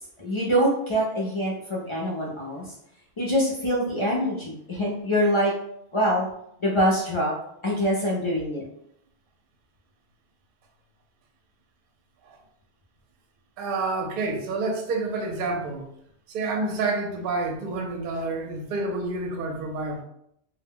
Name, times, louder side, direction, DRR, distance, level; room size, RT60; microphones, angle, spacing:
voice 1, 0.2-2.6 3.2-5.5 5.9-6.3 6.6-7.3 7.6-8.6, equal, 45° left, -4 dB, 0.4 m, -24 dB
voice 2, 13.6-15.8 16.3-20.0, right 3 dB, 60° right, 2 dB, 0.6 m, -28 dB
2.1 x 2.1 x 3.5 m, 0.75 s
omnidirectional pair, 1.2 m